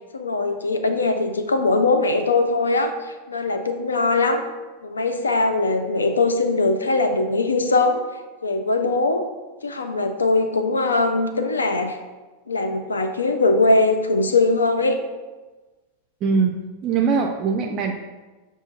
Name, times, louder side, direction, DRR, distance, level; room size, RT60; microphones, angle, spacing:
voice 1, 0.1-2.9 3.3-4.4 4.8-8.0 8.4-9.2 9.6-12.0 12.5-15.0, left 3 dB, 75° left, 6 dB, 0.4 m, -21 dB
voice 2, 16.2-17.9, right 5 dB, 35° right, 3 dB, 0.3 m, -22 dB
5.6 x 2.3 x 4.0 m, 1.2 s
figure-of-eight pair, 90°, 0 cm